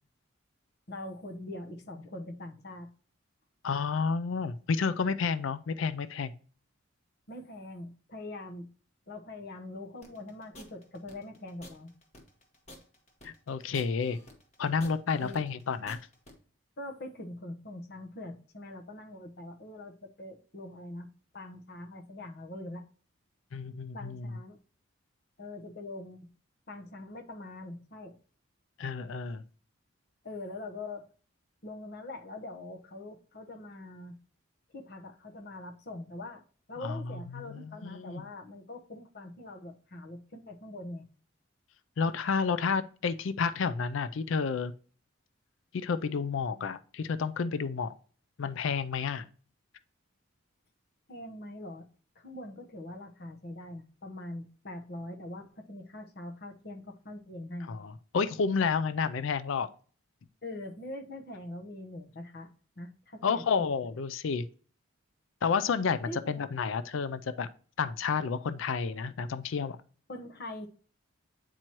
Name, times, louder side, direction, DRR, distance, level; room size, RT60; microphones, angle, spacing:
voice 1, 0.9-2.9 7.3-8.7 9.1-11.9 15.2-15.5 16.8-21.1 21.3-22.9 23.9-24.6 25.4-26.3 26.7-28.2 30.2-31.1 31.6-34.2 34.7-36.4 36.7-41.1 51.1-51.9 52.1-57.7 60.4-62.5 62.8-63.7 66.1-66.5 70.1-70.7, left 2 dB, 50° left, 1.0 m, -43 dB
voice 2, 3.6-6.3 13.2-14.2 14.6-16.0 23.5-24.3 28.8-29.4 36.8-37.0 37.5-38.2 42.0-44.7 45.7-47.9 48.4-49.3 57.7-59.7 63.2-64.5 65.4-67.5 67.8-69.8, left 5 dB, 70° left, 0.4 m, -30 dB
sound 1, 10.0-16.3, left 1 dB, 35° left, 1.4 m, -51 dB
8.8 x 4.5 x 2.9 m
head